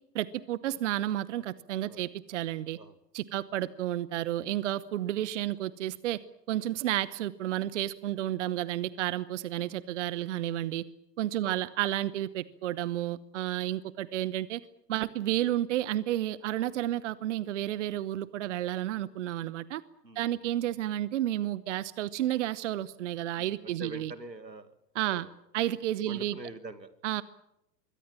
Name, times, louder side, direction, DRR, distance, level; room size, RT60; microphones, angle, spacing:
voice 1, 0.1-2.8 3.1-6.2 6.5-10.8 11.2-14.6 14.9-19.8 20.1-24.1 25.0-25.3 25.5-26.3 27.0-27.2, right 13 dB, 45° right, 19 dB, 1.0 m, -31 dB
voice 2, 8.2-8.5 9.6-9.8 11.4-11.6 20.0-20.4 23.3-24.7 25.1-25.3 26.0-26.9, right 2 dB, 85° right, 12 dB, 2.4 m, -45 dB
25.5 x 23.0 x 7.4 m, 0.83 s
figure-of-eight pair, 100°, 50 cm